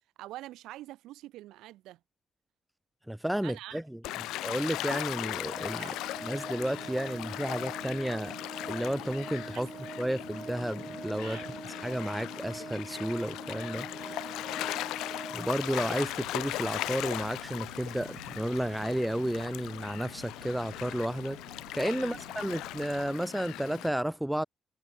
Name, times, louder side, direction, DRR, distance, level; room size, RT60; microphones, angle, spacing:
voice 1, 0.2-2.0 3.4-4.2 5.8-6.0 9.5-9.7 11.2-11.5 13.9-14.2 14.5-14.8 21.9-22.2, right 16 dB, 70° right, 5.2 m, -46 dB
voice 2, 3.1-4.0 4.4-5.9 6.2-8.3 8.7-9.7 10.0-11.4 11.8-13.9 15.3-21.4 21.7-24.4, right 1 dB, 5° right, 0.7 m, -32 dB
Gull seagull / Waves surf, 4.0-23.9, left 16 dB, 70° left, 1.7 m, -38 dB
Organ, 5.4-16.1, right 4 dB, 35° right, 3.1 m, -44 dB
sound 1, 16.0-23.1, right 10 dB, 90° right, 1.0 m, -54 dB
hypercardioid pair, 40°, 0 cm